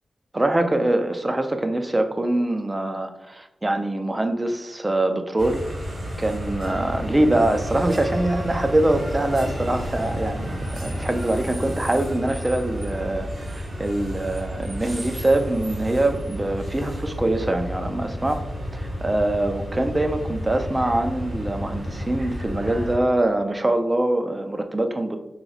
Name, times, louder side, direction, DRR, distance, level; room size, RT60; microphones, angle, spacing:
voice 1, 0.3-5.6 6.2-18.4 18.7-25.2, right 1 dB, 20° right, 6 dB, 0.4 m, -24 dB
sound 1, 5.4-23.0, equal, 55° right, 1.2 m, -31 dB
3.0 x 3.0 x 3.8 m, 0.92 s
wide cardioid pair, 120°, 0 cm